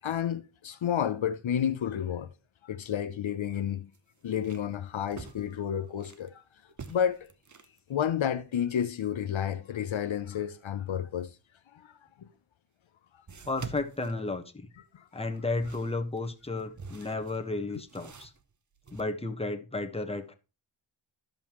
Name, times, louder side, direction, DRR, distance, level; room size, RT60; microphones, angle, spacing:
voice 1, 0.0-2.3 2.6-3.9 4.2-6.4 6.9-7.3 7.9-11.3 11.7-11.9 12.2-12.3 14.9-15.2, left 9 dB, 70° left, 0.7 m, -31 dB
sound 1, 2.7-2.9 3.3-3.4 3.9-6.3 6.7-7.8 12.0-12.1 13.3-14.8 15.3-19.0, right 5 dB, 35° right, 0.8 m, -47 dB
voice 2, 13.5-14.7 15.1-18.3 18.9-20.3, left 2 dB, 10° left, 1.2 m, -33 dB
13.5 x 5.4 x 3.0 m
cardioid pair, 55°, 49 cm